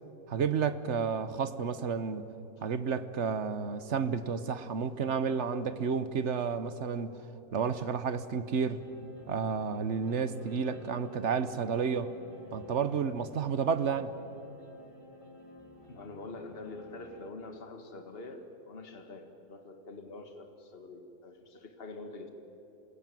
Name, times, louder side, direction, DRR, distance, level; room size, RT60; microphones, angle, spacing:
voice 1, 0.3-2.3 2.6-7.2 7.5-8.8 9.3-12.1 12.5-14.1, right 6 dB, 50° right, 12 dB, 1.2 m, -31 dB
sound 1, 8.8-17.3, left 2 dB, 20° left, 2.1 m, -51 dB
voice 2, 15.9-22.3, left 3 dB, 40° left, 6 dB, 1.9 m, -45 dB
27.0 x 20.5 x 9.3 m, 3.0 s
omnidirectional pair, 1.6 m